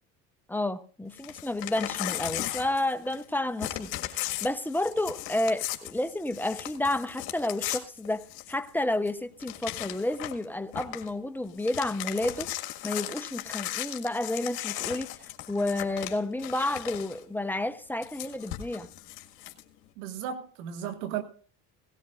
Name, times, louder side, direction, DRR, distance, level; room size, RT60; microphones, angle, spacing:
voice 1, 0.5-12.5 12.8-15.2 15.5-18.9, left 1 dB, 5° left, 0.8 m, -31 dB
Crumpling crinkling / Tearing, 1.1-3.3 3.6-8.7 9.1-9.2 9.4-10.4 10.7-11.1 11.5-17.2 18.0-19.6, left 15 dB, 70° left, 1.8 m, -37 dB
voice 2, 20.0-21.2, right 9 dB, 85° right, 1.9 m, -35 dB
18.0 x 17.0 x 2.5 m
supercardioid pair, 100°, 39 cm